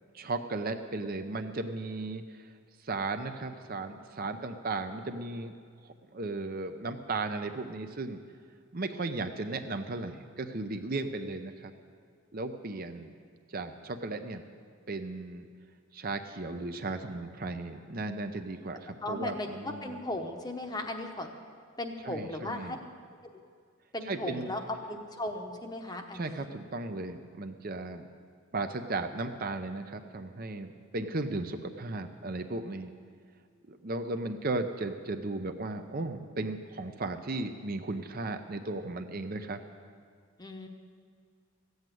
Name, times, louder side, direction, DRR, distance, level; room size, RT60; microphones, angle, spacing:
voice 1, 0.1-2.5 2.8-5.5 6.1-8.2 8.7-11.7 12.3-13.1 13.5-14.4 14.9-15.4 15.9-20.0 22.0-22.8 24.1-24.5 26.1-28.1 28.5-32.9 33.7-39.6, right 2 dB, 40° right, 7 dB, 0.7 m, -35 dB
voice 2, 19.0-21.3 21.8-22.8 23.9-26.5 40.4-40.7, left 1 dB, 20° left, 4 dB, 0.9 m, -37 dB
15.0 x 8.0 x 9.2 m, 2.1 s
head